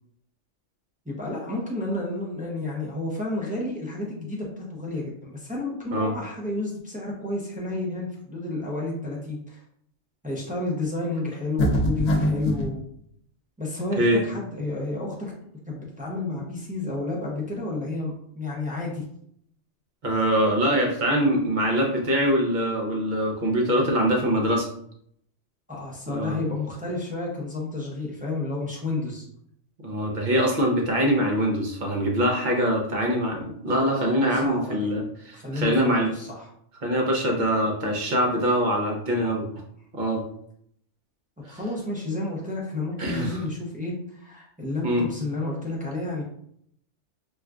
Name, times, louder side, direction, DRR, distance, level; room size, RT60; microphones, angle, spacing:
voice 1, 1.1-9.6 10.2-12.8 13.6-15.3 15.7-19.0 25.7-29.3 33.7-34.9 35.3-36.5 41.5-46.2, left 2 dB, 10° right, -3 dB, 0.4 m, -31 dB
sound 1, 11.6-12.7, left 1 dB, 85° left, 1.0 m, -23 dB
voice 2, 20.0-24.7 26.1-26.4 29.8-36.1 36.8-39.5 39.9-40.2 41.5-41.6 43.0-43.4 44.8-45.0, equal, 45° right, 0 dB, 0.7 m, -23 dB
4.2 x 2.3 x 2.3 m, 0.69 s
omnidirectional pair, 1.2 m